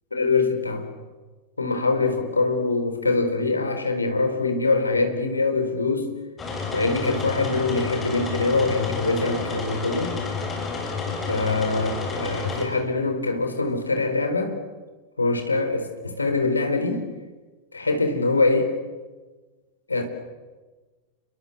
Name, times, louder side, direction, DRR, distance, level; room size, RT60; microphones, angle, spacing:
voice 1, 0.1-0.9 1.6-6.1 6.7-10.2 11.3-14.5 15.2-17.1 17.7-18.7 19.9-20.0, left 3 dB, 80° left, 6 dB, 4.1 m, -23 dB
sound 1, 6.4-12.6, left 3 dB, 20° left, 7.5 m, -30 dB
29.0 x 23.0 x 8.0 m, 1.3 s
figure-of-eight pair, 90°, 0 cm